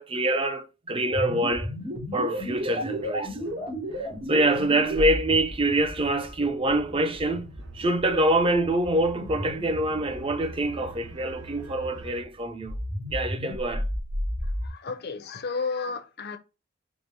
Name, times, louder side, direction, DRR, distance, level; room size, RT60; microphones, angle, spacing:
voice 1, 0.0-1.7 2.1-3.5 4.3-7.5 7.7-12.8 13.1-13.8, right 1 dB, 25° right, 0.5 m, -25 dB
sound 1, 1.1-11.2 12.5-14.7, equal, 80° right, 2.3 m, -34 dB
sound 2, 2.3-12.2, right 2 dB, 60° right, 1.1 m, -46 dB
voice 2, 14.6-16.4, left 4 dB, 50° left, 0.6 m, -32 dB
4.9 x 2.1 x 3.9 m
head